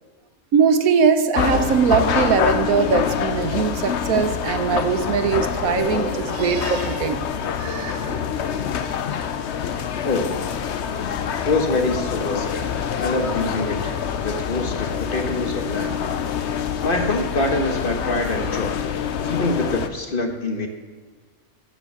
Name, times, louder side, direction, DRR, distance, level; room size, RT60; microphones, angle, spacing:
voice 1, 0.5-7.3 7.6-8.3, right 6 dB, 90° right, 9 dB, 1.3 m, -21 dB
sound 1, 1.3-19.9, left 7 dB, 60° left, 0.9 m, -26 dB
voice 2, 10.0-10.5 11.4-16.0 16.8-18.8 19.2-20.7, left 2 dB, 40° left, 4 dB, 1.4 m, -25 dB
14.5 x 6.1 x 6.6 m, 1.5 s
omnidirectional pair, 1.4 m